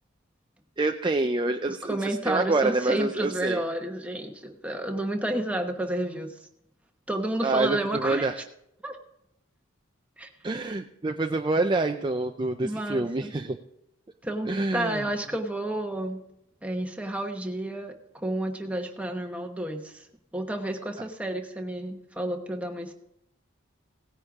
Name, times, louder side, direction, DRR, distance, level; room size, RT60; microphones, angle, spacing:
voice 1, 0.8-3.6 7.4-8.4 10.4-13.6 14.5-15.0, right 2 dB, 25° right, 5 dB, 0.4 m, -27 dB
voice 2, 1.7-6.4 7.1-8.4 8.8-9.0 10.2-10.3 12.6-13.3 14.2-16.2 16.6-20.1 20.3-22.9, right 1 dB, 5° right, 3 dB, 1.1 m, -31 dB
17.5 x 9.9 x 3.6 m, 0.79 s
head